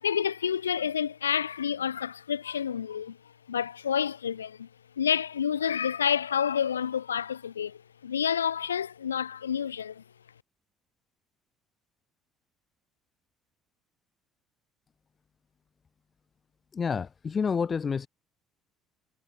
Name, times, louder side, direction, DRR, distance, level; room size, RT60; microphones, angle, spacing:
voice 1, 0.0-3.2 3.5-4.7 5.0-7.8 8.0-10.0, left 8 dB, 85° left, 5.0 m, -29 dB
voice 2, 16.7-18.1, left 6 dB, 35° left, 3.5 m, -29 dB
figure-of-eight pair, 55°, 0 cm